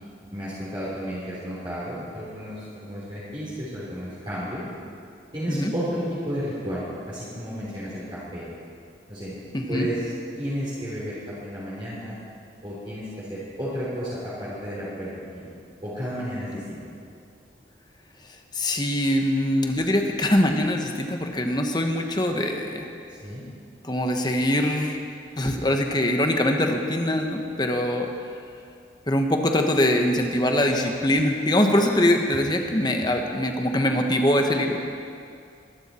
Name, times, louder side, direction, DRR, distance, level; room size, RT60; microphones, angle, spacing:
voice 1, 0.3-4.6 5.3-8.4 9.1-9.3 9.7-10.1 10.4-12.2 12.6-15.5 15.8-16.8 23.2-23.4, equal, 30° right, -9 dB, 3.5 m, -32 dB
voice 2, 9.5-9.9 16.5-16.6 18.5-22.9 23.8-25.0 25.4-28.1 29.1-34.8, left 1 dB, 25° left, 3 dB, 1.2 m, -23 dB
23.0 x 11.5 x 4.4 m, 2.4 s
head